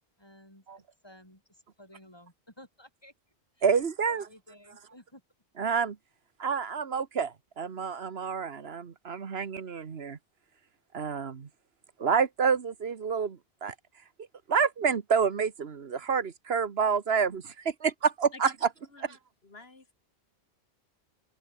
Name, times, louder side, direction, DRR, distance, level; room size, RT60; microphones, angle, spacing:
voice 1, 0.2-3.1 3.5-3.7 4.0-5.2, equal, 20° left, 6.1 m, -54 dB
voice 2, 3.6-4.3 5.6-6.0 6.4-10.2 10.9-11.5 12.0-13.7 14.5-18.5, right 6 dB, 65° right, 1.5 m, -28 dB
voice 3, 19.4-19.9, left 3 dB, 65° left, 3.3 m, -48 dB
open air
omnidirectional pair, 1.1 m